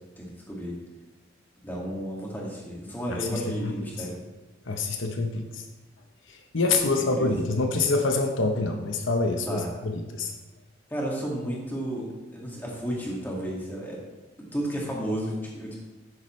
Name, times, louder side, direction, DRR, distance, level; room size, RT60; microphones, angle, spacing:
voice 1, 0.2-0.8 1.6-4.2 7.0-7.3 9.5-9.7 10.9-14.0 14.4-15.8, right 1 dB, 10° left, -3 dB, 2.1 m, -32 dB
voice 2, 3.1-4.1 4.6-5.7 6.3-10.3, left 3 dB, 75° left, 4 dB, 0.9 m, -26 dB
11.0 x 9.5 x 3.2 m, 1.1 s
head